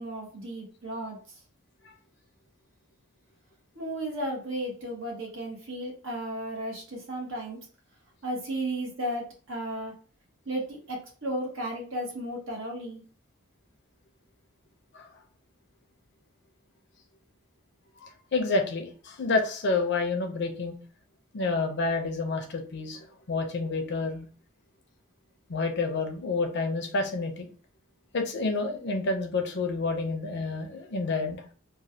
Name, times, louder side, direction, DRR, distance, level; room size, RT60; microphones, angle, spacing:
voice 1, 0.0-1.4 3.7-7.6 8.2-9.9 10.5-13.0, right 1 dB, 65° right, -1 dB, 1.1 m, -34 dB
voice 2, 18.0-20.8 21.3-24.3 25.5-27.5 28.1-31.4, left 3 dB, 55° left, 5 dB, 0.6 m, -29 dB
3.1 x 2.2 x 2.7 m, 0.38 s
head